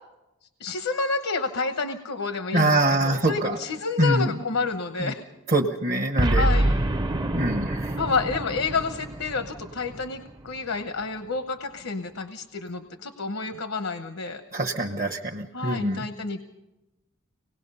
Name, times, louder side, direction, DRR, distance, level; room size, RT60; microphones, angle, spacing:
voice 1, 0.6-5.2 6.3-6.8 8.0-14.4 15.5-16.5, left 4 dB, 75° left, 8 dB, 0.9 m, -29 dB
voice 2, 2.5-3.6 4.0-4.4 5.0-5.1 5.5-6.5 7.3-8.0 14.5-16.0, right 2 dB, 40° right, 2 dB, 0.9 m, -24 dB
Boom, 6.2-10.6, right 1 dB, 20° right, 0.6 m, -26 dB
25.0 x 19.0 x 5.5 m, 1.0 s
head